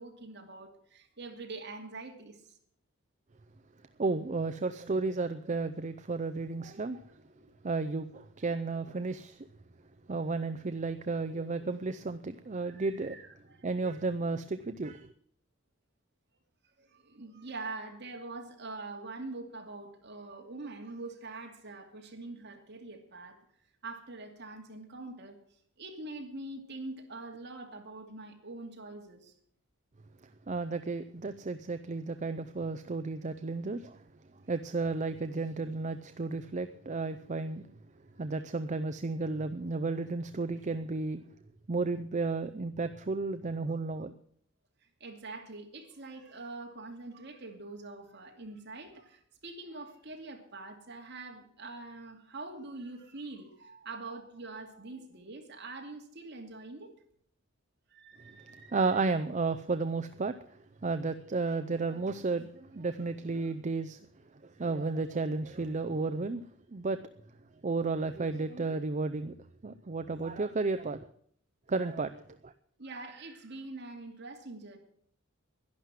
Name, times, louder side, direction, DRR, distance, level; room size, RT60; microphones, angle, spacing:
voice 1, 0.0-2.6 7.4-7.5 12.6-13.7 16.8-23.4 23.8-25.4 25.8-29.3 45.0-56.9 57.9-58.8 61.5-61.6 72.8-74.8, right 3 dB, 55° right, 2.5 m, -44 dB
voice 2, 4.0-7.0 7.6-9.5 10.1-13.2 13.6-15.1 30.5-34.0 34.5-37.6 38.2-41.2 41.7-44.1 58.7-60.4 60.8-64.0 64.4-66.4 66.7-67.0 67.6-69.3 69.6-71.1 71.7-72.5, right 3 dB, 35° right, 0.5 m, -33 dB
11.5 x 11.0 x 7.4 m
head